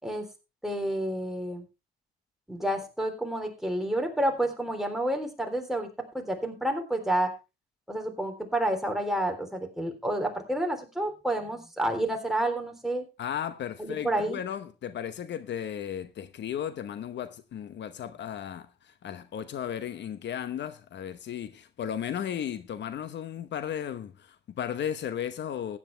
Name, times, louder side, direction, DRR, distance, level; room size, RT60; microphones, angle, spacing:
voice 1, 0.6-1.6 2.5-5.9 6.1-7.3 7.9-13.0 13.8-14.4, right 1 dB, ahead, 3.5 m, -29 dB
voice 2, 13.2-25.8, left 9 dB, 65° left, 0.9 m, -35 dB
15.0 x 10.0 x 3.3 m
cardioid pair, 90°, 20 cm